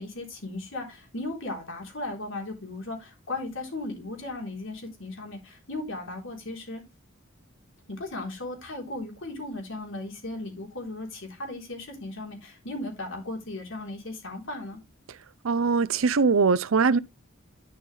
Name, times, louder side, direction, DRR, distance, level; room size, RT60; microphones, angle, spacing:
voice 1, 0.0-6.8 7.9-14.8, left 2 dB, 65° left, 3.6 m, -36 dB
voice 2, 15.4-17.0, right 4 dB, 70° right, 0.6 m, -21 dB
11.5 x 5.5 x 3.3 m
head